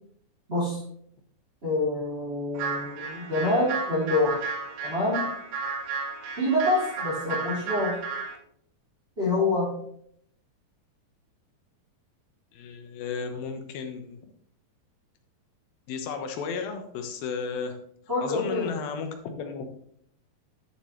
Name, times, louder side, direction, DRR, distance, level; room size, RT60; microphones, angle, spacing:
voice 1, 0.5-0.8 1.6-4.5 4.8-5.2 6.4-8.0 9.2-9.7 18.1-18.7, left 2 dB, 15° right, -8 dB, 2.9 m, -26 dB
sound 1, 2.5-8.4, right 4 dB, 75° right, 3.1 m, -33 dB
voice 2, 12.5-14.2 15.9-17.8 18.2-19.7, left 5 dB, 80° left, 6 dB, 2.9 m, -34 dB
11.0 x 7.4 x 3.2 m, 0.66 s
omnidirectional pair, 4.2 m